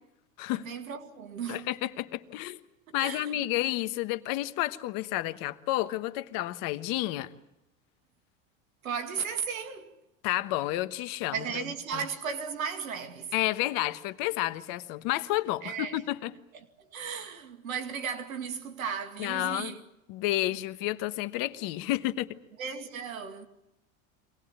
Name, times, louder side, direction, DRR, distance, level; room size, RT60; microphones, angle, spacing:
voice 1, 0.5-1.7 2.9-3.4 8.8-10.0 11.3-13.3 15.6-16.0 16.8-19.8 20.5-20.6 22.6-23.5, right 6 dB, 90° right, 2.3 m, -35 dB
voice 2, 1.5-2.6 2.9-7.3 10.2-11.6 11.9-12.0 13.3-16.3 19.2-19.7 20.1-22.4, left 16 dB, 55° left, 1.3 m, -30 dB
24.5 x 18.5 x 9.0 m
hypercardioid pair, 95°, 40 cm